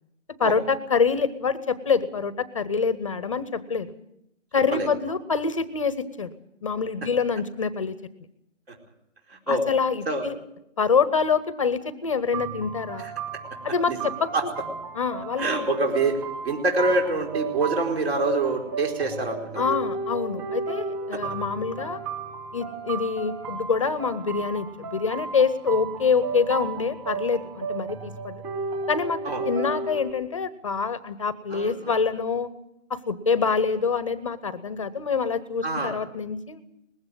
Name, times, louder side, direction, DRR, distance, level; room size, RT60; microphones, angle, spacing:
voice 1, 0.4-3.9 4.5-6.3 6.6-8.0 9.5-10.4 10.8-13.1 13.6-14.5 15.0-15.7 19.6-22.0 22.5-28.4 28.9-29.2 29.5-32.5 32.9-36.6, left 5 dB, 25° left, 15 dB, 0.8 m, -26 dB
voice 2, 9.3-9.6 10.1-10.3 13.0-13.1 13.9-14.0 14.3-14.4 15.4-19.7 21.1-21.2 29.2-29.4 31.5-31.9 33.4-33.5 35.6-35.9, right 2 dB, 55° right, 2 dB, 4.6 m, -26 dB
sound 1, 12.3-30.1, right 4 dB, 20° right, 3.2 m, -34 dB
20.5 x 15.5 x 9.3 m, 0.81 s
hypercardioid pair, 165°, 38 cm